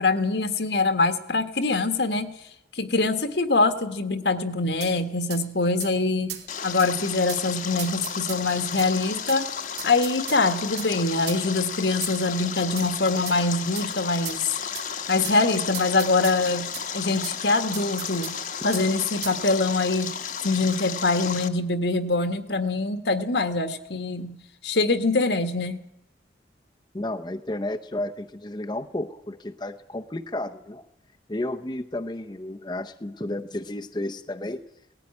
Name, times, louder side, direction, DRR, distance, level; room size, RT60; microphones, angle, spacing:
voice 1, 0.0-2.3 2.7-9.5 9.8-14.4 15.1-18.4 18.6-20.1 20.4-24.4 24.6-25.8, left 3 dB, 75° left, 9 dB, 1.5 m, -24 dB
sound 1, 4.8-4.9 5.3-5.4 5.8-5.9 6.3-6.5 6.8-6.9 7.3-7.4 7.8-8.9 9.3-9.4 9.8-10.4 10.8-10.9 11.3-11.4 12.0-12.3 12.8-12.9 13.3-13.4 13.7-13.9 14.2-14.4 14.7-14.9 15.2-15.4 15.7-16.9 17.2-17.4 17.7-18.4 18.7-18.9 19.2-19.4, right 11 dB, 70° right, 3.0 m, -37 dB
Stream, 6.5-21.5, left 7 dB, 45° left, 1.1 m, -33 dB
voice 2, 26.9-30.8 31.3-34.6, left 1 dB, 25° left, 5 dB, 0.7 m, -32 dB
18.5 x 14.5 x 9.7 m, 0.84 s
head